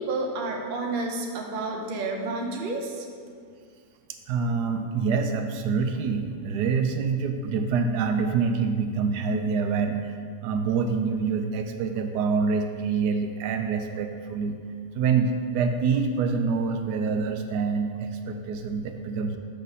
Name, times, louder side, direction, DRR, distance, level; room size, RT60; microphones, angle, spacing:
voice 1, 0.0-3.0, right 2 dB, 45° right, 0 dB, 0.7 m, -30 dB
voice 2, 4.1-10.1 10.4-14.6 14.9-19.4, right 5 dB, 80° right, 6 dB, 1.1 m, -26 dB
6.7 x 6.5 x 4.0 m, 2.1 s
omnidirectional pair, 1.8 m